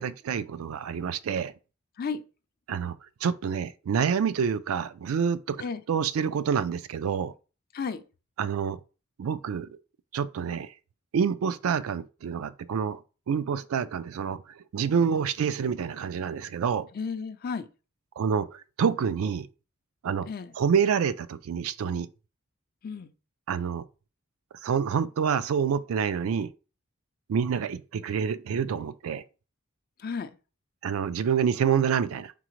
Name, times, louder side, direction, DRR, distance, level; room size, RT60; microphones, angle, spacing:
voice 1, 0.0-1.5 2.7-2.9 3.2-5.6 5.9-7.3 8.4-8.8 9.2-9.7 10.1-10.7 11.1-13.0 13.3-14.4 14.7-16.9 18.2-19.5 20.0-20.3 20.6-22.1 23.5-23.8 24.6-26.5 27.3-29.2 30.8-32.3, right 7 dB, 70° right, 0.3 m, -27 dB
voice 2, 16.9-17.7 20.3-20.5 22.8-23.1 30.0-30.3, left 5 dB, 45° left, 0.4 m, -33 dB
4.1 x 3.7 x 3.0 m
head